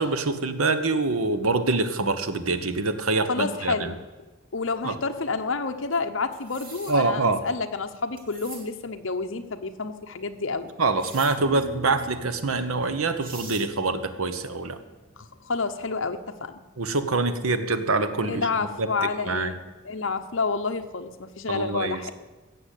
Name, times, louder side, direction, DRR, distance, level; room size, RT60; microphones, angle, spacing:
voice 1, 0.0-3.9 4.8-5.0 6.9-7.4 10.8-14.8 16.8-19.5 21.5-22.1, right 3 dB, 85° right, 10 dB, 1.1 m, -25 dB
voice 2, 3.3-4.0 4.5-10.7 15.2-16.6 18.3-22.1, left 4 dB, 65° left, 6 dB, 1.0 m, -29 dB
sound 1, 6.3-7.0 8.2-8.6 11.0-11.3 12.8-12.9 13.2-13.7, right 4 dB, 40° right, 2.7 m, -42 dB
sound 2, 11.4-15.9, equal, 10° left, 1.6 m, -44 dB
16.0 x 7.1 x 8.3 m, 1.2 s
head